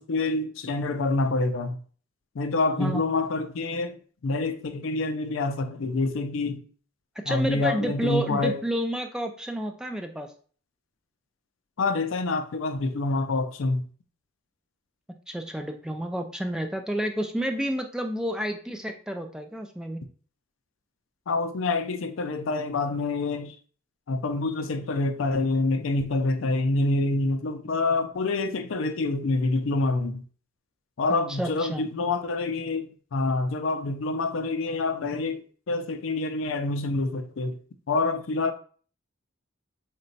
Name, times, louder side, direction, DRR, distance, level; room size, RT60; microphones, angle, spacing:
voice 1, 0.0-1.8 2.3-6.6 7.3-8.6 11.8-13.9 21.3-23.6 24.1-30.2 31.0-37.6 37.9-38.5, left 3 dB, 85° left, 0.5 m, -27 dB
voice 2, 7.3-10.3 15.3-20.0 31.4-31.9, equal, 5° right, 0.3 m, -30 dB
4.0 x 2.2 x 3.9 m
head